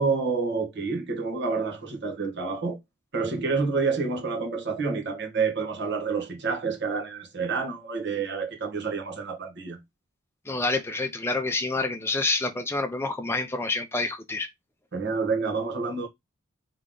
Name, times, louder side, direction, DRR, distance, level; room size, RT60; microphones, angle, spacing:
voice 1, 0.0-2.8 3.1-9.8 14.9-16.1, right 4 dB, 55° right, 1.4 m, -28 dB
voice 2, 10.5-14.5, left 3 dB, 10° left, 0.5 m, -28 dB
3.8 x 3.2 x 3.7 m
head